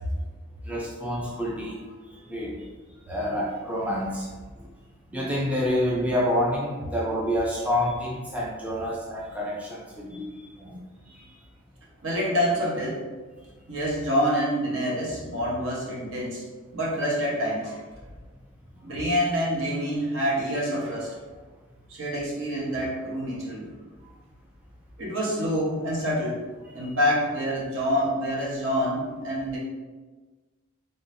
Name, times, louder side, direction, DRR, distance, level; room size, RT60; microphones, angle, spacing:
voice 1, 0.6-1.8 2.3-2.6 3.1-4.3 5.1-10.8 11.1-11.3 26.8-26.9, equal, 5° right, -5 dB, 0.4 m, -28 dB
voice 2, 12.0-13.0 13.7-16.5 16.7-17.8 18.8-21.2 21.9-23.7 25.0-26.4 26.7-29.6, equal, 65° right, -4 dB, 1.1 m, -27 dB
3.9 x 3.8 x 2.6 m, 1.3 s
head